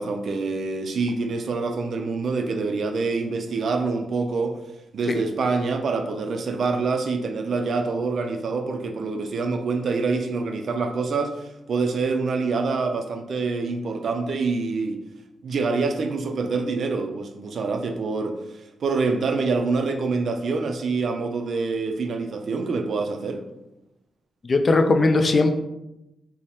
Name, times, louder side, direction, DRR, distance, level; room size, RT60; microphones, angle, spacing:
voice 1, 0.0-4.6 4.9-15.0 15.4-23.4, right 4 dB, 65° right, 6 dB, 0.3 m, -26 dB
voice 2, 24.4-25.5, left 3 dB, 50° left, 6 dB, 0.3 m, -19 dB
3.2 x 2.0 x 2.7 m, 0.93 s
supercardioid pair, 45°, 0 cm